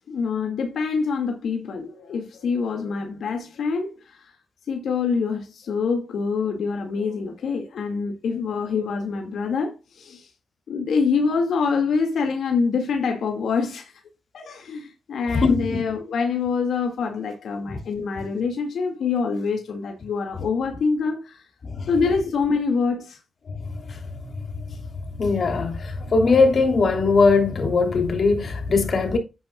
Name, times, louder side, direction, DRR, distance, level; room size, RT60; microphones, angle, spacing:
voice 1, 0.1-4.3 4.7-10.3 10.7-13.9 14.3-21.4 21.9-23.2, left 5 dB, 85° left, 2.1 m, -25 dB
voice 2, 15.3-15.8 17.7-17.8 21.6-21.9 23.9-24.3 25.2-29.2, left 4 dB, 60° left, 3.1 m, -20 dB
10.0 x 9.5 x 2.3 m
cardioid pair, 65°, 0 cm